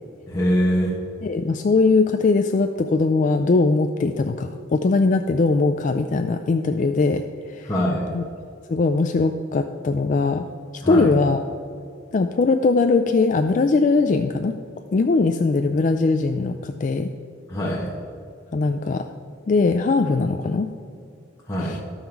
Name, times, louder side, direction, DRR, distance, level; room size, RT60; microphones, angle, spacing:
voice 1, 0.3-1.0 7.7-8.1 10.8-11.1 17.5-17.9 21.5-21.8, equal, 15° left, -6 dB, 1.1 m, -22 dB
voice 2, 1.2-7.7 8.1-8.2 8.7-10.5 10.7-11.4 12.1-14.6 14.9-17.1 18.5-19.1 19.5-20.7 21.6-21.8, left 3 dB, 40° left, 6 dB, 0.3 m, -20 dB
13.0 x 5.6 x 4.5 m, 2.5 s
head